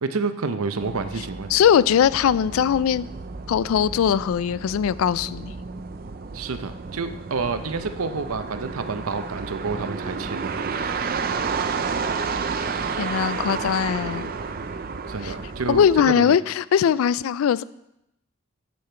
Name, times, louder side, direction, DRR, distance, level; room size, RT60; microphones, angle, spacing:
voice 1, 0.0-1.5 6.3-10.8 15.1-15.9 16.2-16.4, right 4 dB, 90° right, 10 dB, 0.7 m, -29 dB
sound 1, 0.8-16.1, right 5 dB, 45° right, 0.5 m, -31 dB
voice 2, 1.5-3.1 3.5-5.5 13.0-14.3 15.2-15.3 15.7-17.6, left 8 dB, 80° left, 19 dB, 0.3 m, -20 dB
8.4 x 7.6 x 4.4 m, 0.84 s
head